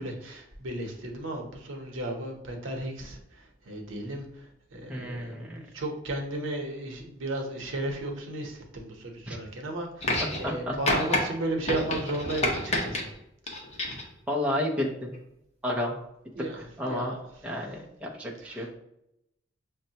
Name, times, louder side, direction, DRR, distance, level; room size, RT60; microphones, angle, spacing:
voice 1, 0.0-4.4 4.7-13.1 16.3-17.2 18.4-18.7, right 1 dB, 80° right, 2 dB, 0.8 m, -34 dB
voice 2, 4.9-5.6 9.3-9.4 10.2-10.8 14.3-15.1 15.6-15.9 16.8-17.1 17.4-18.7, left 1 dB, 5° right, -2 dB, 0.5 m, -31 dB
sound 1, 10.0-10.6 10.9-11.2 11.7-13.0 13.5-14.1 15.1-15.2, left 1 dB, 35° left, 0.8 m, -28 dB
6.1 x 2.1 x 2.7 m, 0.82 s
head